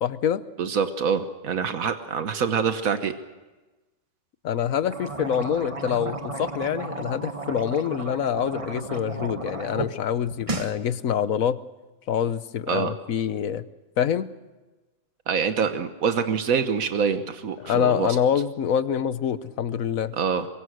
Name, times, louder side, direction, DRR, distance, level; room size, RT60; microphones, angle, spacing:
voice 1, 0.0-0.4 4.4-11.6 12.1-13.7 14.0-14.3 17.6-20.2, left 8 dB, 80° left, 14 dB, 1.3 m, -25 dB
voice 2, 0.6-3.1 12.7-12.9 15.3-18.2 20.1-20.5, right 6 dB, 85° right, 9 dB, 1.5 m, -25 dB
sound 1, 4.8-9.9 10.2-10.7, right 3 dB, 25° right, 1.3 m, -34 dB
24.5 x 22.0 x 6.4 m, 1.1 s
omnidirectional pair, 1.4 m